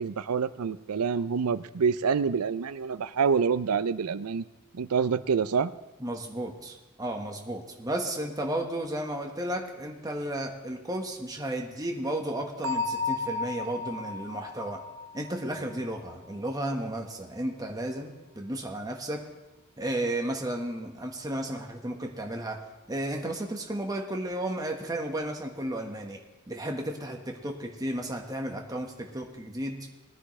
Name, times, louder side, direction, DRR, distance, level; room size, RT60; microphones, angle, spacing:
voice 1, 0.0-4.5 4.7-5.7, right 6 dB, 90° right, 15 dB, 0.5 m, -27 dB
voice 2, 6.0-14.8 15.1-19.2 19.8-22.6 22.9-26.2 26.5-29.8, right 1 dB, 15° right, 2 dB, 1.4 m, -33 dB
Bell, 12.6-16.3, left 4 dB, 60° right, 0.8 m, -34 dB
20.5 x 9.8 x 3.3 m, 1.1 s
head